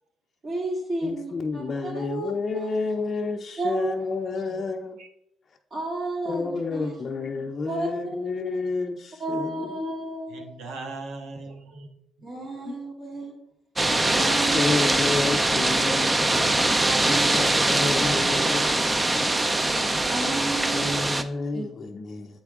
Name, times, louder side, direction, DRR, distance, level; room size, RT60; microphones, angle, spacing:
voice 1, 0.4-3.0 3.6-4.1 5.7-7.1 7.7-8.2 9.2-10.5 12.2-13.3 13.9-14.8 15.6-16.3 16.8-17.3 20.1-21.0 21.5-21.6, right 2 dB, 50° right, 2.8 m, -32 dB
voice 2, 1.0-5.0 6.3-9.6 12.7-12.8 14.5-19.0 20.7-22.3, left 4 dB, 40° left, 0.5 m, -30 dB
voice 3, 10.3-11.9 17.9-18.9, right 3 dB, 85° right, 1.2 m, -39 dB
sound 1, 13.8-21.2, right 2 dB, 20° right, 0.5 m, -22 dB
7.7 x 4.5 x 3.5 m
cardioid pair, 90°, 0 cm